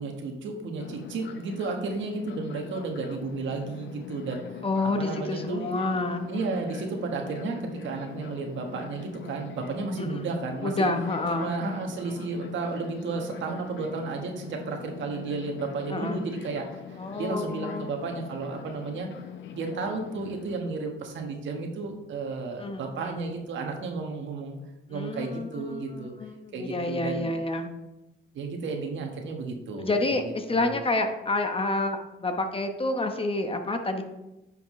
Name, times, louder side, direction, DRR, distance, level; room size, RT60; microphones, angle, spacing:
voice 1, 0.0-4.4 5.0-5.6 6.3-7.6 7.8-10.9 11.3-16.8 17.2-19.1 19.5-24.6 24.9-26.1 26.5-27.3 28.3-30.2 30.5-30.8, right 3 dB, 70° right, 3 dB, 1.5 m, -33 dB
Fixed-wing aircraft airplane, 0.8-20.6, left 8 dB, 65° left, 0.8 m, -43 dB
voice 2, 4.6-6.3 10.0-10.3 10.6-11.5 15.9-16.2 17.0-18.0 22.6-23.2 24.9-27.7 29.8-34.0, left 2 dB, 25° left, 6 dB, 1.0 m, -29 dB
9.5 x 5.8 x 3.2 m, 0.96 s
cardioid pair, 90°, 20 cm